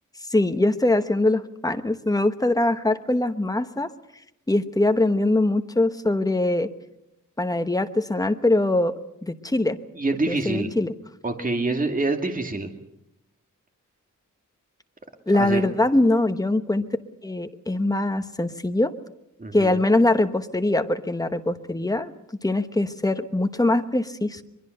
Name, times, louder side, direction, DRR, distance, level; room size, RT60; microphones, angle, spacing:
voice 1, 0.3-3.9 4.5-6.7 7.4-9.8 10.3-10.9 15.3-16.8 17.2-19.0 19.5-22.1 22.4-24.4, left 2 dB, 10° left, 8 dB, 1.1 m, -22 dB
voice 2, 9.9-10.7 11.2-12.7 15.3-15.6 19.4-19.8, right 2 dB, 25° right, 5 dB, 2.2 m, -26 dB
23.0 x 22.5 x 6.6 m, 0.84 s
wide cardioid pair, 140°, 32 cm